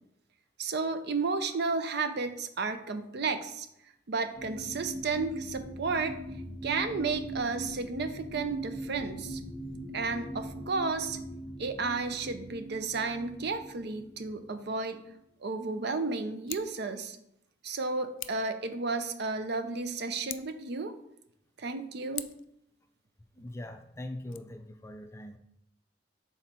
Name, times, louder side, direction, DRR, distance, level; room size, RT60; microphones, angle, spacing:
voice 1, 0.6-3.7 4.1-6.1 6.6-9.4 9.9-11.2 11.6-15.0 15.4-17.2 17.6-20.9 21.6-22.3, right 4 dB, 60° right, 9 dB, 0.5 m, -32 dB
sound 1, 4.3-14.4 15.0-15.1, right 1 dB, ahead, 1.1 m, -41 dB
Scissors, 16.4-16.8 18.2-18.5 20.2-20.7 22.1-22.5 24.2-24.4, left 14 dB, 80° left, 0.4 m, -42 dB
voice 2, 23.3-25.4, left 1 dB, 15° left, 7 dB, 0.4 m, -42 dB
6.1 x 4.0 x 4.3 m, 0.77 s
head